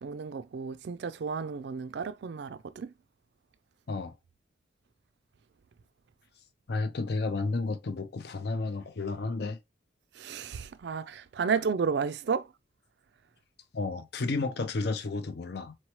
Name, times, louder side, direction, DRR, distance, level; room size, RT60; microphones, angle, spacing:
voice 1, 0.0-2.9 10.1-12.5, right 5 dB, 60° right, 0.4 m, -32 dB
voice 2, 6.7-9.6 13.7-15.7, left 3 dB, 55° left, 0.5 m, -32 dB
4.3 x 3.0 x 2.9 m
head